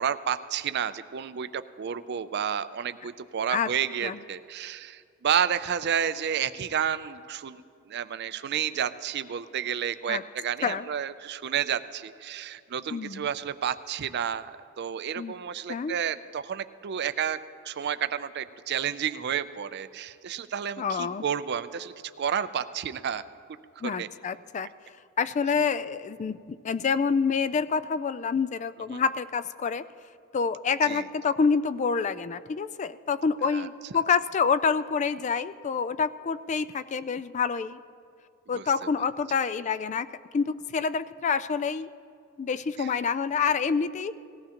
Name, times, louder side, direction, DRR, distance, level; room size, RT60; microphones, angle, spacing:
voice 1, 0.0-17.4 17.6-23.2 23.8-24.1 28.9-29.0 30.8-31.1 33.5-33.7 38.5-38.9 42.8-42.9, right 8 dB, 50° right, 13 dB, 0.4 m, -31 dB
voice 2, 12.9-13.3 15.2-15.3 15.7-16.0 20.8-21.2 23.8-24.7 25.2-29.9 30.3-37.8 38.5-40.1 40.3-41.9 42.4-44.1, left 5 dB, 35° left, 14 dB, 0.3 m, -27 dB
19.0 x 15.0 x 2.9 m, 2.3 s
head